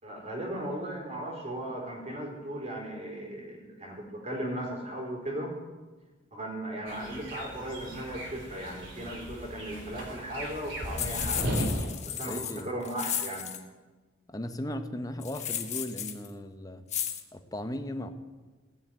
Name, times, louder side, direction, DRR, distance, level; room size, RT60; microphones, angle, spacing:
voice 1, 0.0-5.5 6.3-11.6 12.1-13.5, right 1 dB, 35° right, 0 dB, 3.7 m, -37 dB
sound 1, 6.9-11.9, equal, 70° right, 3.4 m, -36 dB
sound 2, 11.0-13.6 15.2-16.3 16.9-17.2, left 10 dB, 35° left, 1.2 m, -34 dB
voice 2, 12.3-12.7 14.3-16.9 17.3-18.1, left 1 dB, 20° left, 8 dB, 0.9 m, -37 dB
16.5 x 7.4 x 9.1 m, 1.3 s
head